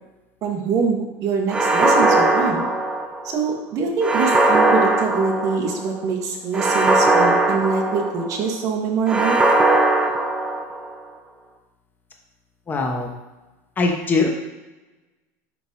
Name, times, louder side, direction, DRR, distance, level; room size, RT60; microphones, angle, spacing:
voice 1, 0.4-2.7 3.2-9.4, right 5 dB, 45° right, 1 dB, 1.4 m, -24 dB
sound 1, 1.5-3.4 4.0-5.8 6.5-8.4 9.1-10.9, right 2 dB, 10° right, 0.6 m, -19 dB
voice 2, 12.7-13.1 13.8-14.3, left 3 dB, 25° left, 2 dB, 1.1 m, -21 dB
10.5 x 3.8 x 2.8 m, 1.1 s
supercardioid pair, 125°, 8 cm